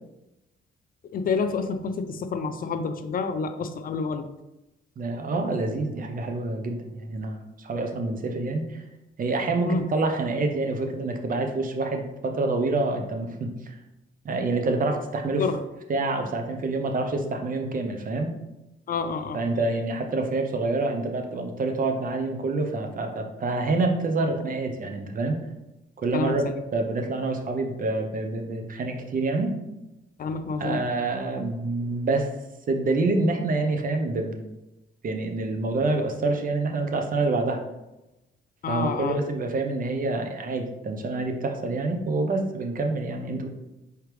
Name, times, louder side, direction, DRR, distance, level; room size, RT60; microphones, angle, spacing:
voice 1, 1.1-4.3 9.7-9.8 15.4-15.6 18.9-19.4 26.1-26.6 30.2-30.9 38.6-39.2, left 5 dB, 45° left, 9 dB, 0.4 m, -28 dB
voice 2, 5.0-8.8 9.2-13.8 14.2-15.5 15.9-18.3 19.3-25.4 26.0-29.5 30.6-32.3 32.7-34.4 35.0-37.6 38.7-43.5, right 3 dB, 45° right, 4 dB, 0.7 m, -27 dB
4.8 x 3.3 x 3.1 m, 0.95 s
cardioid pair, 90°, 20 cm